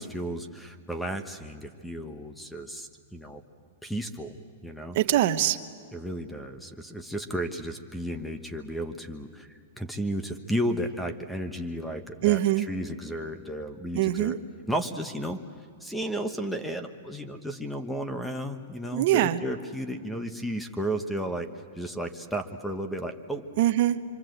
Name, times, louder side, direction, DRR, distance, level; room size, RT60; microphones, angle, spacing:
voice 1, 0.0-3.4 3.8-4.4 4.6-5.0 5.9-9.5 9.8-14.4 14.7-15.4 15.8-21.5 21.8-23.4, right 1 dB, 5° left, 8 dB, 1.2 m, -33 dB
voice 2, 4.9-5.6 12.2-12.7 13.9-14.4 18.9-19.4 23.6-24.0, right 14 dB, 55° right, 11 dB, 1.0 m, -23 dB
25.5 x 25.5 x 7.9 m, 2.1 s
hypercardioid pair, 145°, 0 cm